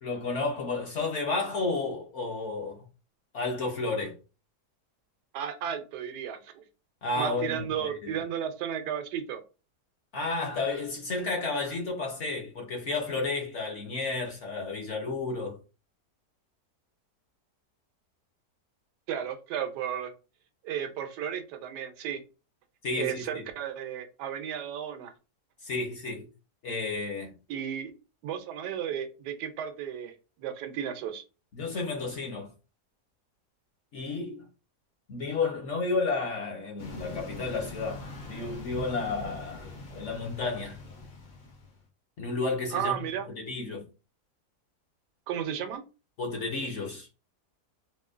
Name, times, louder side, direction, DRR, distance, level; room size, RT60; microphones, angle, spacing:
voice 1, 0.0-2.9 3.3-4.2 7.0-8.2 10.1-15.6 22.8-23.5 25.6-26.3 26.6-27.3 31.5-32.5 33.9-34.5 35.1-40.8 42.2-43.8 46.2-47.1, left 3 dB, 55° left, 0.8 m, -32 dB
voice 2, 5.3-6.6 7.2-9.4 19.1-20.1 20.6-22.2 22.9-25.1 27.5-27.9 28.2-31.2 42.7-43.3 45.3-45.8, right 9 dB, 80° right, 1.2 m, -34 dB
sound 1, 36.8-41.8, left 2 dB, 75° left, 0.4 m, -42 dB
4.2 x 2.2 x 2.4 m
omnidirectional pair, 1.8 m